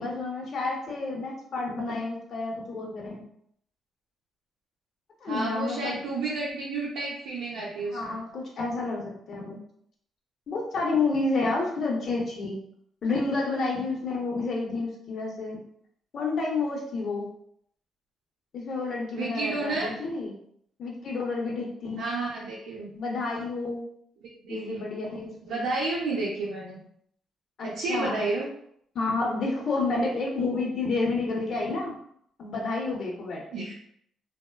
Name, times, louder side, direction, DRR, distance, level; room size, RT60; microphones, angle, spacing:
voice 1, 0.0-3.2 5.2-6.0 7.9-9.6 10.5-12.6 13.0-15.6 16.1-17.3 18.5-20.3 20.8-22.0 22.9-23.9 24.5-25.7 27.6-28.2 28.9-31.9 32.4-33.4, left 3 dB, 60° left, -1 dB, 0.7 m, -30 dB
voice 2, 5.3-8.2 19.1-19.9 22.0-22.9 24.2-24.9 25.4-26.8 27.6-28.5 33.5-33.7, right 3 dB, 90° right, -5 dB, 0.5 m, -31 dB
2.8 x 2.0 x 2.3 m, 0.68 s
cardioid pair, 90°, 0 cm